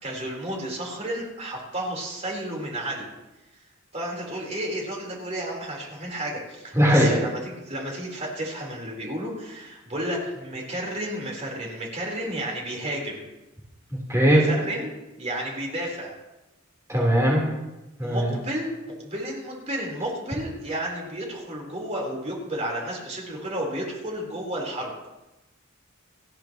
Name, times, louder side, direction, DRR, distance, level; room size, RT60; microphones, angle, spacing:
voice 1, 0.0-3.1 3.9-13.2 14.2-16.1 18.0-24.9, right 1 dB, 35° right, -2 dB, 4.1 m, -32 dB
voice 2, 6.8-7.1 14.1-14.4 16.9-17.5 18.0-18.3, equal, 15° right, -5 dB, 3.9 m, -19 dB
30.0 x 10.5 x 3.1 m, 0.99 s
head